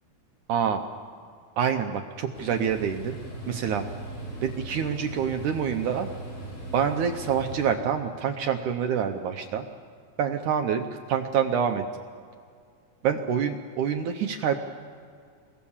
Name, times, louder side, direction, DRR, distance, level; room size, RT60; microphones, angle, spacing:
voice 1, 0.5-0.8 1.6-3.2 3.5-3.9 4.4-6.1 6.7-9.6 10.2-11.8 13.0-14.6, right 7 dB, 70° right, 6 dB, 2.1 m, -26 dB
sound 1, 2.3-7.7, right 2 dB, 50° left, 6.1 m, -38 dB
29.0 x 22.5 x 7.3 m, 2.2 s
omnidirectional pair, 4.2 m